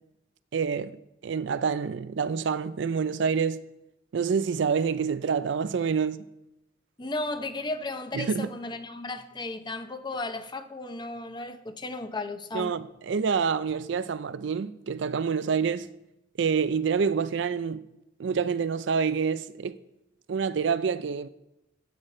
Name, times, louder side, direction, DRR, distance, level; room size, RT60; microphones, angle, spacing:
voice 1, 0.5-3.6 4.1-6.2 8.1-8.5 12.5-15.9 16.4-17.8 18.2-19.7 20.3-21.3, right 6 dB, 70° right, 0.4 m, -27 dB
voice 2, 7.0-12.8, left 2 dB, 25° left, 0.7 m, -35 dB
14.0 x 6.4 x 4.3 m
head